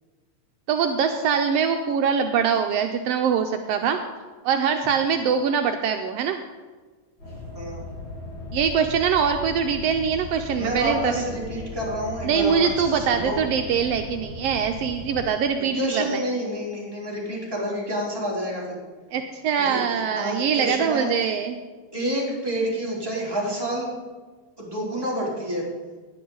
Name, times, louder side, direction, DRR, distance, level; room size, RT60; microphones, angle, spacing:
voice 1, 0.7-4.0 4.4-6.4 8.5-11.1 12.2-16.2 19.1-21.6, right 7 dB, 80° right, 5 dB, 1.4 m, -23 dB
sound 1, 7.2-15.2, left 2 dB, 35° left, 5.9 m, -37 dB
voice 2, 10.6-13.4 15.7-18.8 19.6-21.1 21.9-23.9 24.6-25.6, equal, 5° right, -6 dB, 3.4 m, -28 dB
18.0 x 10.0 x 3.9 m, 1.4 s
omnidirectional pair, 3.5 m